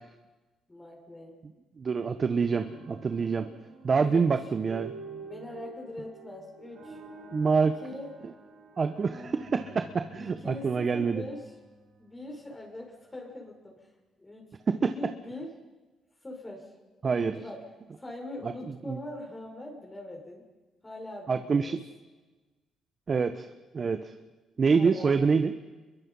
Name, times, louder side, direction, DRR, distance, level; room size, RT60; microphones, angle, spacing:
voice 1, 0.7-1.4 4.0-4.3 5.2-7.0 7.8-8.1 10.2-11.5 12.0-13.9 14.2-15.6 16.2-16.7 17.1-17.7 18.0-20.5 20.8-21.8 24.8-25.3, left 1 dB, 20° left, 1 dB, 5.9 m, -42 dB
voice 2, 1.8-3.5 3.8-4.9 7.3-7.7 8.8-11.2 14.8-14.9 17.0-17.4 18.4-19.0 21.3-21.8 23.1-23.5 23.7-24.1 24.6-25.5, right 5 dB, 40° right, 8 dB, 1.2 m, -26 dB
sound 1, 2.4-12.5, right 4 dB, 75° right, 5.2 m, -48 dB
27.0 x 22.5 x 5.6 m, 1.2 s
cardioid pair, 90°, 0 cm